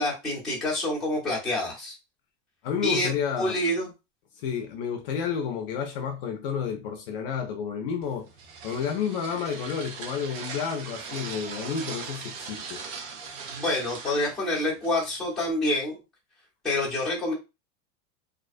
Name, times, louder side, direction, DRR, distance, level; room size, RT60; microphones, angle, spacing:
voice 1, 0.0-2.0 2.8-3.1 3.4-3.9 13.5-16.0 16.6-17.3, left 1 dB, ahead, 0.7 m, -27 dB
voice 2, 2.6-3.6 4.4-8.3 8.6-12.8, left 7 dB, 50° left, 0.5 m, -30 dB
sound 1, 8.0-15.5, right 5 dB, 70° right, 0.7 m, -40 dB
2.4 x 2.2 x 2.4 m
supercardioid pair, 170°, 36 cm